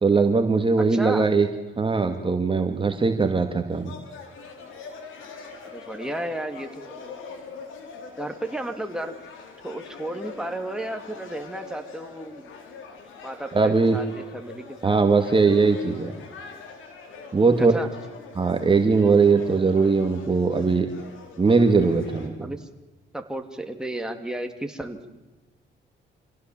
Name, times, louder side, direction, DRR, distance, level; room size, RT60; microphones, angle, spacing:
voice 1, 0.0-1.5 1.8-3.9 13.5-14.0 14.8-16.1 17.3-17.8 18.4-20.9 21.4-22.5, right 4 dB, 25° right, 6 dB, 1.9 m, -20 dB
voice 2, 0.9-1.3 5.7-7.1 8.2-9.1 9.6-12.5 13.2-15.0 17.6-17.9 22.4-22.7 23.1-25.2, right 1 dB, 5° right, 5 dB, 2.7 m, -33 dB
sound 1, 3.7-22.3, left 4 dB, 85° left, 4.3 m, -43 dB
26.5 x 17.0 x 7.5 m, 1.1 s
cardioid pair, 90°, 20 cm